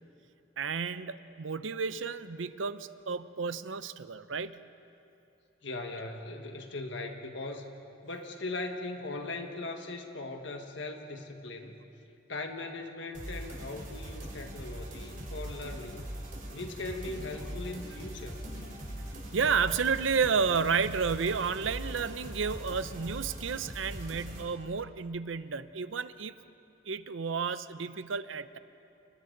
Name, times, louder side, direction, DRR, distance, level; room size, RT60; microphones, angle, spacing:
voice 1, 0.6-4.6 19.3-26.3 26.8-28.6, right 5 dB, 90° right, 13 dB, 0.7 m, -31 dB
voice 2, 5.6-7.7 8.0-11.8 12.3-16.1 16.5-18.4, left 2 dB, 75° left, 4 dB, 1.6 m, -39 dB
sound 1, 13.1-24.4, right 1 dB, 45° right, 4.5 m, -41 dB
sound 2, 16.6-21.8, left 1 dB, 55° left, 2.0 m, -53 dB
30.0 x 28.5 x 4.0 m, 2.7 s
head